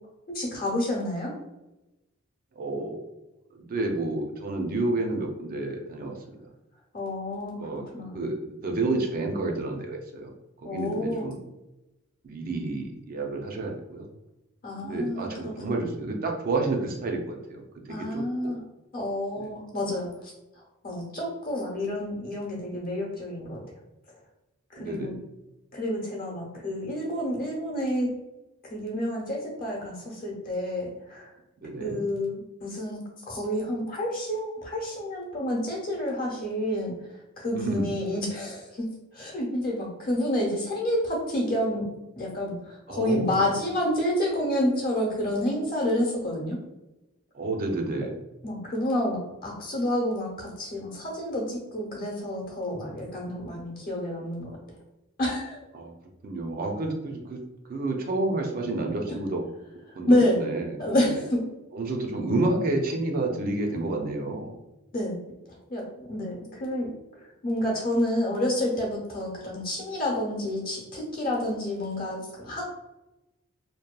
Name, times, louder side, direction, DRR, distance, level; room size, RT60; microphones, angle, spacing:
voice 1, 0.3-1.3 6.9-7.6 7.9-8.2 10.6-11.3 14.6-15.5 17.9-18.6 18.9-20.3 20.8-23.6 24.7-25.1 25.7-28.1 28.7-31.3 31.8-36.9 37.4-38.9 39.1-41.9 42.2-46.6 48.0-48.1 48.4-54.6 55.2-55.6 60.1-60.4 60.8-61.4 63.7-63.8 64.9-65.2 65.7-66.9 67.4-72.6, left 1 dB, 45° left, -3 dB, 0.8 m, -29 dB
voice 2, 2.6-3.0 3.5-6.2 7.6-7.8 8.1-10.3 10.6-11.4 12.2-14.1 14.8-18.5 19.4-19.5 24.8-25.2 31.6-32.0 37.5-37.9 42.9-43.5 47.3-48.1 55.7-55.9 56.2-57.4 57.7-59.4 59.9-61.1 61.7-64.5, right 2 dB, 45° right, 2 dB, 0.4 m, -30 dB
2.8 x 2.2 x 2.2 m, 0.97 s
head